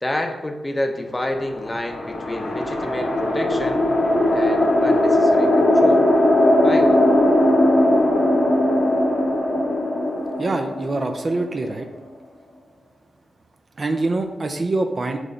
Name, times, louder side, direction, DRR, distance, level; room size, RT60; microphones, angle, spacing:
voice 1, 0.0-3.9 4.3-6.0 6.6-6.9, left 1 dB, 15° left, 4 dB, 0.6 m, -29 dB
sound 1, 1.5-11.9, left 1 dB, 85° left, 1.5 m, -19 dB
voice 2, 10.4-11.9 13.8-15.2, right 2 dB, 35° right, 5 dB, 0.5 m, -24 dB
6.1 x 3.2 x 5.2 m, 1.1 s
wide cardioid pair, 135°, 0 cm